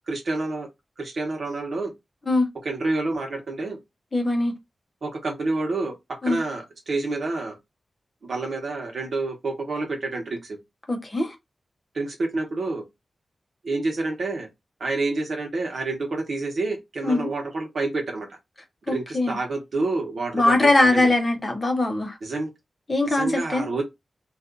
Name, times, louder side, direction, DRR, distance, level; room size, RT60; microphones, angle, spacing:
voice 1, 0.1-0.7 1.0-1.9 2.6-3.8 5.0-7.6 8.2-10.6 11.9-12.8 13.6-14.5 14.8-18.3 18.9-21.1 22.2-22.5 23.1-23.8, right 3 dB, 55° right, 1.0 m, -28 dB
voice 2, 4.1-4.5 6.2-6.4 10.9-11.3 17.0-17.3 18.9-19.4 20.3-22.2 22.9-23.7, left 2 dB, 25° left, 0.7 m, -21 dB
2.6 x 2.4 x 3.6 m
wide cardioid pair, 170°, 0 cm